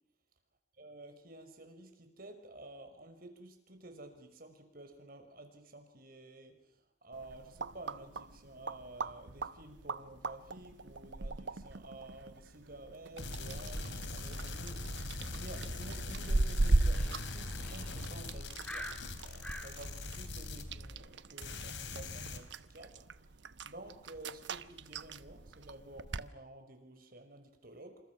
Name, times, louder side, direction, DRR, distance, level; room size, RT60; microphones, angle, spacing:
voice 1, 0.8-6.6 7.0-14.8 15.3-23.0 23.6-28.0, right 1 dB, 55° right, 6 dB, 5.6 m, -52 dB
sound 1, 7.1-26.3, right 2 dB, 85° right, 1.0 m, -38 dB
sound 2, 13.2-21.1 21.4-22.4, left 2 dB, 85° left, 3.3 m, -42 dB
sound 3, 17.0-19.8, equal, 5° left, 3.9 m, -47 dB
28.5 x 27.0 x 6.2 m, 0.81 s
head